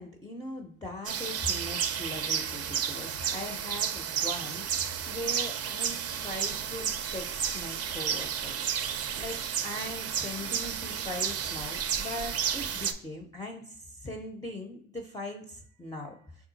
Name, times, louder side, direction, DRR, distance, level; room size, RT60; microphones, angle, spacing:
voice 1, 0.0-8.5 9.1-16.5, left 1 dB, 10° left, 2 dB, 0.5 m, -40 dB
sound 1, 1.0-12.9, right 8 dB, 55° right, 0.5 m, -32 dB
3.7 x 2.3 x 3.9 m, 0.64 s
cardioid pair, 90°, 30 cm